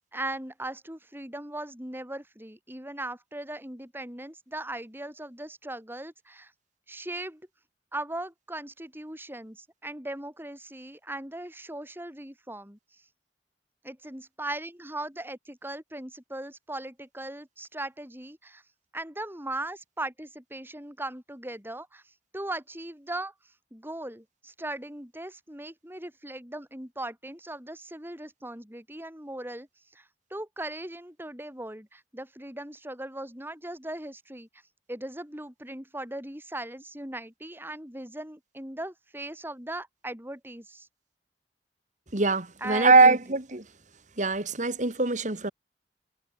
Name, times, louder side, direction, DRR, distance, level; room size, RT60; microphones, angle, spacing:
voice 1, 0.1-6.5 6.9-7.4 7.9-12.8 13.8-18.6 18.9-22.0 22.3-23.3 23.7-29.7 29.9-34.5 34.9-40.9 42.6-42.9, right 1 dB, 15° right, 6.4 m, -38 dB
voice 2, 42.1-43.7 44.2-45.5, right 3 dB, 45° right, 2.3 m, -22 dB
head